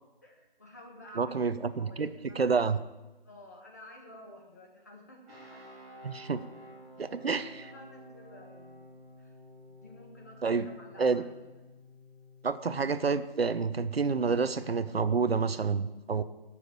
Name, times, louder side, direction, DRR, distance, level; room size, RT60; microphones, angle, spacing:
voice 1, 0.2-2.5 3.2-5.6 6.1-6.3 7.0-8.9 9.2-9.4 9.7-11.3 11.6-11.7, left 1 dB, 15° left, -1 dB, 1.3 m, -52 dB
voice 2, 1.2-2.1 2.4-2.8 6.0-6.4 7.0-7.6 10.4-10.7 11.0-11.2 12.4-16.2, right 5 dB, 80° right, 13 dB, 0.9 m, -28 dB
sound 1, 5.2-15.4, left 1 dB, 10° right, 3.0 m, -53 dB
11.0 x 7.3 x 8.6 m, 1.1 s
figure-of-eight pair, 175°, 30 cm